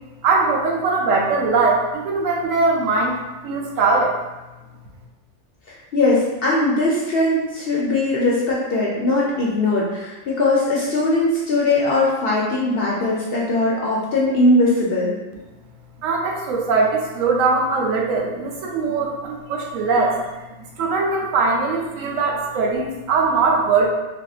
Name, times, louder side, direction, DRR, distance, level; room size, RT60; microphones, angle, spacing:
voice 1, 0.2-3.2 3.4-4.1 16.0-20.2 20.6-23.9, right 4 dB, 75° right, -1 dB, 1.0 m, -20 dB
voice 2, 5.7-15.1, left 2 dB, 60° left, -5 dB, 0.6 m, -20 dB
3.4 x 2.6 x 2.4 m, 1.1 s
omnidirectional pair, 1.4 m